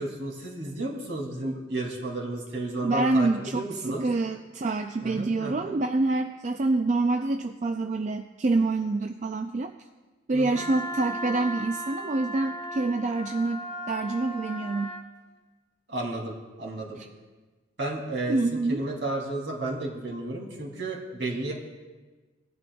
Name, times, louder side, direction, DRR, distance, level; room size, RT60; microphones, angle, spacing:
voice 1, 0.0-3.3 3.5-4.0 5.0-5.7 10.3-10.6 15.9-17.0 17.8-21.5, right 2 dB, 70° right, -1 dB, 2.6 m, -32 dB
voice 2, 2.8-9.7 10.3-15.0 17.0-17.1 18.3-18.8, right 3 dB, 40° right, 6 dB, 0.3 m, -26 dB
Wind instrument woodwind instrument, 10.5-15.1, equal, 25° left, 1.4 m, -36 dB
18.5 x 11.0 x 2.3 m, 1.3 s
head